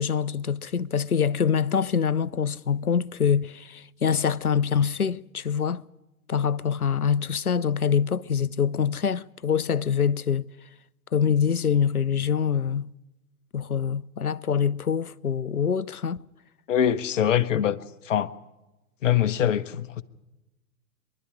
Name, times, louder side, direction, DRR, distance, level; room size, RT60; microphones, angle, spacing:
voice 1, 0.0-5.8 6.3-10.4 11.1-12.9 13.5-16.2, left 7 dB, 90° left, 0.6 m, -25 dB
voice 2, 16.7-17.8 18.0-18.3 19.0-20.0, left 10 dB, 60° left, 1.1 m, -23 dB
24.0 x 12.0 x 9.7 m
figure-of-eight pair, 105°, 43 cm